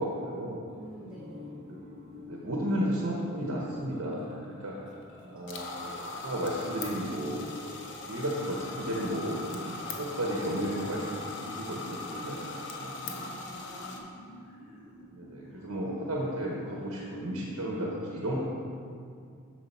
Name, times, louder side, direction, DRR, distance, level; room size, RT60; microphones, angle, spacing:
voice 1, 0.0-0.6 1.7-1.8 2.3-4.3 4.6-4.8 5.3-7.5 8.1-11.1 11.4-13.2 15.1-18.5, equal, 70° right, -3 dB, 1.0 m, -33 dB
sound 1, 0.7-17.9, left 1 dB, 25° left, 1.5 m, -52 dB
voice 2, 0.8-1.5 5.2-5.6 13.0-14.2, equal, 5° right, -10 dB, 0.9 m, -48 dB
sound 2, 1.1-5.9, left 3 dB, 40° right, 1.3 m, -51 dB
sound 3, 5.5-14.0, left 3 dB, 55° left, 0.8 m, -40 dB
7.3 x 6.4 x 4.3 m, 2.3 s
head